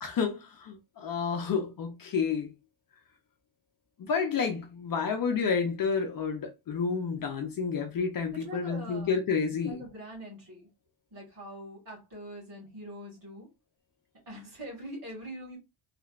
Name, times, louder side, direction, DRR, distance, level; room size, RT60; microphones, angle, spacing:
voice 1, 0.0-2.5 4.0-9.8, left 5 dB, 45° left, 0.7 m, -30 dB
voice 2, 8.3-9.1 9.6-10.7 11.1-13.5 14.3-15.6, right 1 dB, 45° right, 2.2 m, -43 dB
3.3 x 3.2 x 2.4 m
cardioid pair, 175°, 48 cm